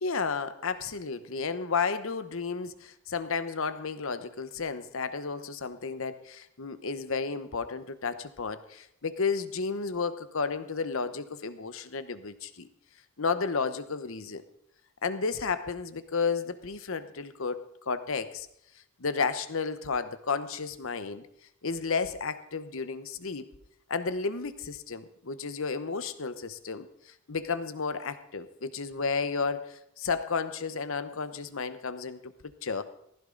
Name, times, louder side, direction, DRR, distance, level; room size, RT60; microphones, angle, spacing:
voice 1, 0.0-12.7 13.2-14.4 15.0-18.5 19.0-21.2 21.6-23.5 23.9-26.9 27.3-32.8, left 5 dB, 65° left, 12 dB, 0.9 m, -32 dB
15.5 x 15.0 x 3.9 m, 0.75 s
head